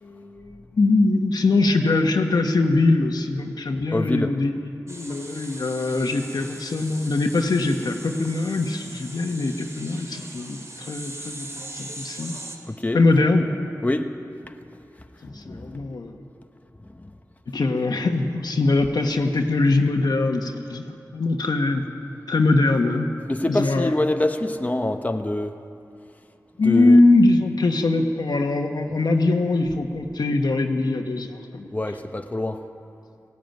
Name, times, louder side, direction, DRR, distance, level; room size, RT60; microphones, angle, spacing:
voice 1, 0.0-4.5 4.9-12.4 12.9-13.4 15.2-16.2 17.5-21.8 22.3-23.1 23.5-23.9 26.6-31.7, left 2 dB, 85° left, 4 dB, 1.5 m, -22 dB
voice 2, 3.9-4.3 12.6-13.0 13.8-14.1 14.4-14.6 15.2-15.9 16.8-17.1 23.3-25.6 26.6-27.0 31.7-32.7, left 1 dB, 20° left, 5 dB, 1.0 m, -26 dB
sound 1, 4.9-12.6, right 1 dB, 45° right, 2.9 m, -40 dB
18.5 x 16.0 x 9.3 m, 2.6 s
wide cardioid pair, 65°, 7 cm